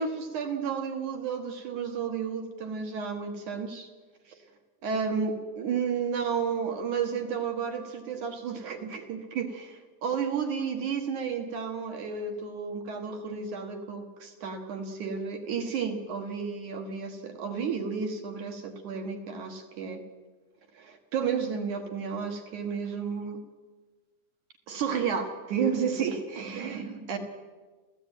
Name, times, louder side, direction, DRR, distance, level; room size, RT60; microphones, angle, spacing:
voice 1, 0.0-3.9 4.3-4.4 4.8-20.0 20.7-23.4 24.7-27.2, right 6 dB, 60° right, 5 dB, 2.3 m, -32 dB
29.0 x 15.0 x 9.1 m, 1.4 s
omnidirectional pair, 5.4 m